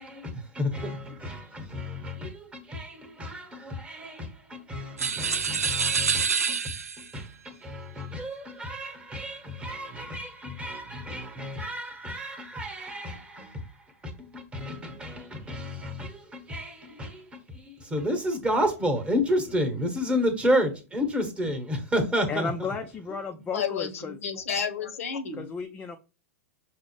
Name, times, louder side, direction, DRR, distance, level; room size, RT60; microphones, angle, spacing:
voice 1, 0.0-13.7 14.0-22.5, equal, 15° right, 1.0 m, -31 dB
sound 1, 5.0-7.1, right 6 dB, 90° right, 0.4 m, -27 dB
voice 2, 22.3-24.2 25.4-26.0, left 4 dB, 20° left, 0.4 m, -33 dB
voice 3, 23.5-25.5, left 6 dB, 70° left, 0.8 m, -31 dB
6.0 x 2.0 x 3.0 m
hypercardioid pair, 105°, 8 cm